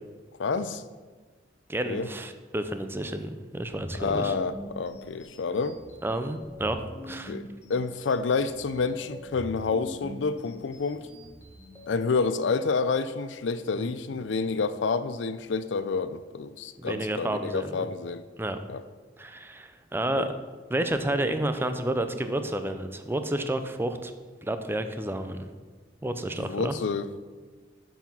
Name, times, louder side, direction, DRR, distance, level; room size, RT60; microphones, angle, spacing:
voice 1, 0.4-0.8 1.9-2.1 4.0-5.8 7.3-7.4 7.7-11.1 11.9-18.2 18.7-18.8 20.1-20.3 26.4-27.2, left 4 dB, 75° left, 13 dB, 0.5 m, -29 dB
voice 2, 1.7-4.3 6.0-6.8 7.1-7.3 13.8-13.9 16.8-17.9 18.4-18.6 19.2-20.3 20.7-24.1 24.4-25.5 26.0-26.7, right 1 dB, 10° right, 9 dB, 0.5 m, -30 dB
sound 1, 3.7-11.9, equal, 15° left, 1.5 m, -44 dB
7.1 x 5.7 x 5.9 m, 1.4 s
head